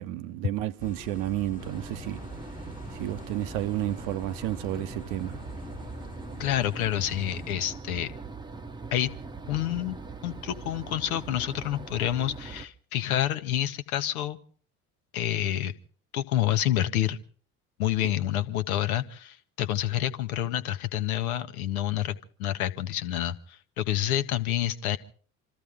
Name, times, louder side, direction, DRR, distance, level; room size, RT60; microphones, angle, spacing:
voice 1, 0.0-2.2 3.0-5.4, right 14 dB, 60° right, 0.9 m, -31 dB
sound 1, 0.8-7.5, left 3 dB, 20° left, 1.4 m, -45 dB
sound 2, 1.6-12.7, right 4 dB, 10° right, 0.8 m, -41 dB
voice 2, 6.4-8.1 8.9-9.1 9.5-10.0 10.2-14.4 15.1-15.7 16.1-17.2 17.8-25.0, left 12 dB, 70° left, 1.1 m, -28 dB
26.5 x 14.0 x 3.6 m
figure-of-eight pair, 60°, 44 cm